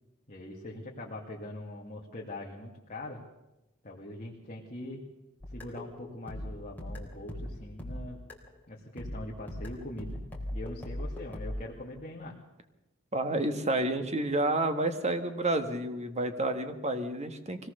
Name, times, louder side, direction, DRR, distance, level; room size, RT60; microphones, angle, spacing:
voice 1, 0.3-3.2 3.8-5.0 5.5-8.2 8.7-10.2 10.5-12.3, left 1 dB, 35° left, -3 dB, 2.5 m, -42 dB
sound 1, 5.4-8.6 9.0-11.6, left 1 dB, 10° left, 3.8 m, -39 dB
voice 2, 13.1-17.7, right 2 dB, 30° right, 8 dB, 1.7 m, -30 dB
24.0 x 18.0 x 6.7 m, 0.97 s
head